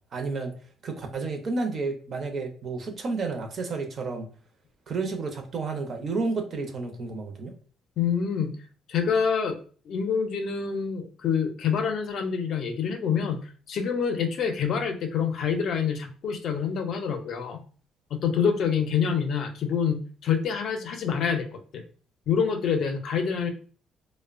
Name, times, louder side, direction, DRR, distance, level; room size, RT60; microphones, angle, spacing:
voice 1, 0.1-0.5 0.8-4.3 4.9-7.5, right 3 dB, 45° right, 5 dB, 0.5 m, -31 dB
voice 2, 8.0-8.5 8.9-9.6 9.9-13.4 13.7-17.6 18.1-21.8 22.3-23.5, left 6 dB, 60° left, 5 dB, 0.4 m, -26 dB
2.8 x 2.0 x 2.4 m, 0.42 s
cardioid pair, 130°, 0 cm